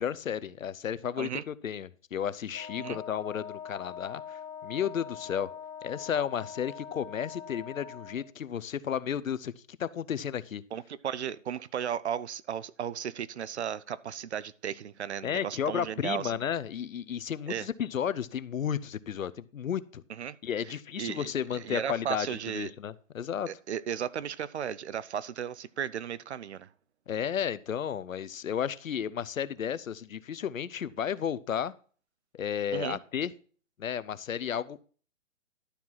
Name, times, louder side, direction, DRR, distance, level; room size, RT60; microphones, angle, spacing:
voice 1, 0.0-5.5 5.8-9.5 9.8-10.6 15.2-20.0 20.4-23.5 27.1-31.7 32.3-33.3 33.8-34.8, left 8 dB, 80° left, 0.8 m, -33 dB
Wind instrument woodwind instrument, 2.5-8.3, left 8 dB, 10° left, 0.5 m, -43 dB
voice 2, 10.7-16.3 17.5-17.7 20.1-20.4 21.0-22.7 23.5-26.7 32.7-33.0, right 8 dB, 55° right, 0.7 m, -35 dB
11.5 x 4.6 x 5.7 m
hypercardioid pair, 155°, 39 cm